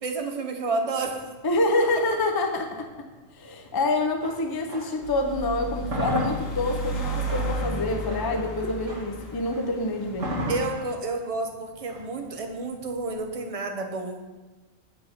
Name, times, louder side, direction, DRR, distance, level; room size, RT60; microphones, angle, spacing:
voice 1, 0.0-1.3 10.5-14.2, right 3 dB, 35° right, 4 dB, 0.7 m, -30 dB
sound 1, 1.0-5.1 5.5-13.5, equal, 70° right, 1.8 m, -36 dB
voice 2, 1.4-2.9 3.4-10.3, left 2 dB, 40° left, 4 dB, 0.3 m, -26 dB
sound 2, 5.0-10.6, right 1 dB, 85° left, 1.8 m, -33 dB
6.6 x 5.4 x 5.6 m, 1.2 s
omnidirectional pair, 1.3 m